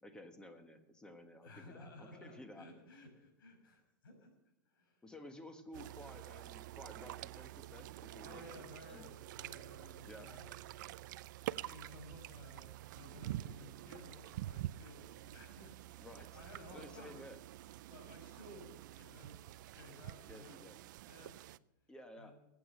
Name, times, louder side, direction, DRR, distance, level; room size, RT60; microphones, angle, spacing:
voice 1, 0.0-2.7 5.0-9.1 10.0-10.3 16.0-16.4 16.7-17.4 20.3-20.8 21.9-22.3, left 1 dB, 5° left, 7 dB, 1.5 m, -54 dB
voice 2, 1.4-4.3 4.7-5.0 8.2-10.6 11.4-17.3 17.9-19.4 19.7-20.6 21.0-21.4 22.2-22.3, left 2 dB, 85° left, 4 dB, 5.6 m, -56 dB
sound 1, 5.7-21.6, right 15 dB, 60° right, 0.5 m, -48 dB
20.5 x 8.6 x 6.2 m, 0.94 s
supercardioid pair, 150°, 11 cm